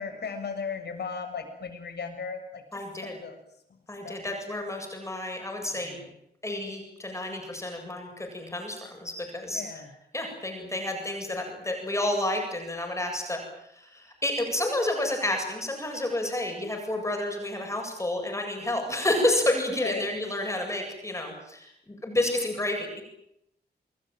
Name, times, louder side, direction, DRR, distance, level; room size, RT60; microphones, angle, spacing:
voice 1, 0.0-2.8 3.1-3.4 4.0-4.2 5.7-6.1 9.5-9.9 19.8-20.1, left 5 dB, 80° left, 5 dB, 7.3 m, -36 dB
voice 2, 2.7-3.1 3.9-5.9 6.4-9.6 10.1-13.4 13.8-23.0, left 1 dB, 15° left, 2 dB, 7.9 m, -30 dB
28.5 x 21.0 x 9.3 m, 0.79 s
wide cardioid pair, 170°, 17 cm